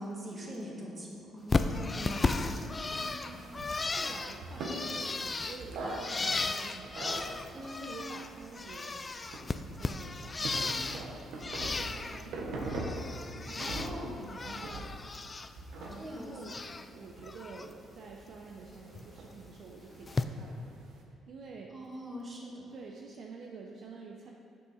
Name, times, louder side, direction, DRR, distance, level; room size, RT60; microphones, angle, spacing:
voice 1, 0.0-2.8 7.5-7.9 13.6-14.1 16.0-16.7 21.7-22.7, equal, 30° right, -3 dB, 1.8 m, -42 dB
Bird, 1.5-8.3 8.5-11.1 11.4-12.2 12.6-13.9 14.2-15.5 15.8-16.9 17.2-17.7 18.9-19.1 20.1-20.2, left 3 dB, 25° left, 0.4 m, -35 dB
voice 2, 3.0-7.0 7.6-9.0 9.8-12.6 13.3-15.0 15.8-16.6 16.9-20.8 21.1-21.8 22.7-24.3, right 4 dB, 55° right, 0 dB, 0.6 m, -48 dB
sound 1, 3.2-21.0, right 1 dB, 80° right, 1.1 m, -43 dB
8.3 x 6.4 x 4.1 m, 2.6 s
cardioid pair, 105°, 0 cm